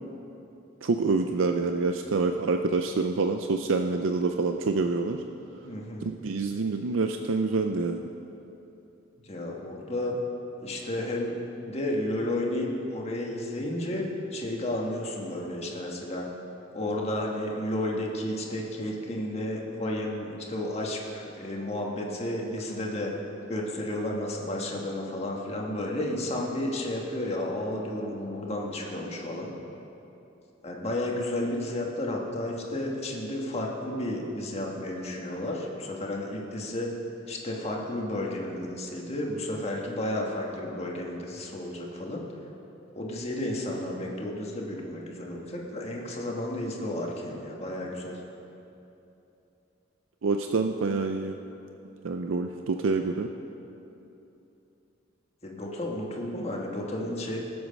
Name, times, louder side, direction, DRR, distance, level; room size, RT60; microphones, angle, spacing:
voice 1, 0.8-5.2 6.0-8.1 50.2-51.4 52.0-53.3, right 3 dB, 85° right, 5 dB, 0.5 m, -27 dB
voice 2, 5.6-6.1 9.3-10.1 10.6-16.3 16.7-23.1 23.5-29.5 30.6-36.9 37.3-42.2 42.9-48.2 55.4-57.4, left 1 dB, 30° left, -1 dB, 1.6 m, -32 dB
18.5 x 7.9 x 5.3 m, 2.9 s
head